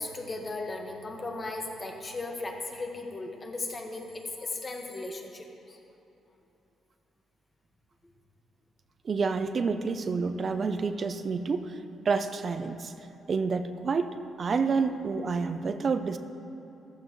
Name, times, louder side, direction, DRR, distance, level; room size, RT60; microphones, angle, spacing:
voice 1, 0.0-5.8, left 2 dB, 30° left, 2 dB, 1.6 m, -36 dB
voice 2, 9.0-11.7 12.1-12.9 13.3-16.2, right 4 dB, 45° right, 9 dB, 0.6 m, -29 dB
14.0 x 13.5 x 3.2 m, 2.9 s
cardioid pair, 90°, 0 cm